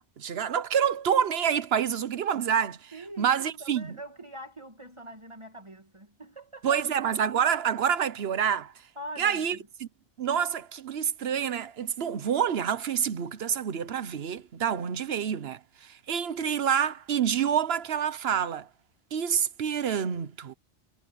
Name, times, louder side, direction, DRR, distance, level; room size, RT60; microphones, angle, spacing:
voice 1, 0.0-2.9 3.2-3.9 6.6-8.7 9.2-9.6 10.2-18.7 19.1-20.5, right 8 dB, 60° right, 1.1 m, -27 dB
voice 2, 2.9-6.8 9.0-9.7, right 1 dB, 25° right, 2.0 m, -43 dB
omnidirectional pair, 1.2 m